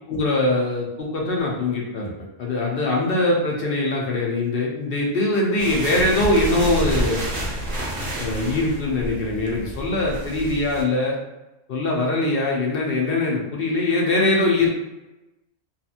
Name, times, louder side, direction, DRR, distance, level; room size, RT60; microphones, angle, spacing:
voice 1, 0.1-2.1 2.4-7.3 8.2-11.2 11.7-14.7, left 2 dB, 60° left, -2 dB, 0.6 m, -22 dB
sound 1, 5.6-10.8, right 1 dB, 50° right, 0.5 m, -29 dB
2.7 x 2.4 x 2.4 m, 0.98 s
omnidirectional pair, 1.3 m